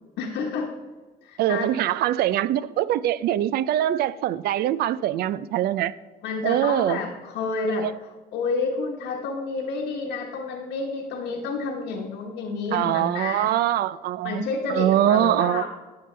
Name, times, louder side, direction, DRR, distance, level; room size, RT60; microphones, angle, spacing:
voice 1, 0.2-0.7 1.2-1.7 6.2-7.9 8.3-13.5 14.2-15.7, left 4 dB, 85° left, 1.2 m, -29 dB
voice 2, 1.4-5.9 6.4-7.0 7.7-8.0 12.7-14.4 14.7-15.7, right 12 dB, 70° right, 0.4 m, -23 dB
12.0 x 7.7 x 3.3 m
cardioid pair, 110°, 17 cm